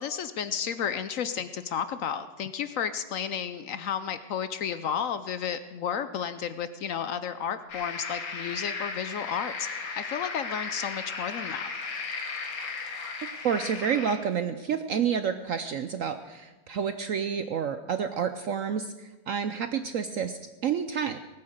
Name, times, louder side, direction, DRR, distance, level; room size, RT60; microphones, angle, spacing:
voice 1, 0.0-9.7 10.0-11.6, left 8 dB, 70° left, 12 dB, 0.8 m, -32 dB
sound 1, 7.7-14.2, left 4 dB, 85° left, 2.5 m, -36 dB
voice 2, 13.4-21.2, right 7 dB, 70° right, 9 dB, 0.7 m, -29 dB
19.0 x 8.7 x 6.6 m, 1.2 s
omnidirectional pair, 2.0 m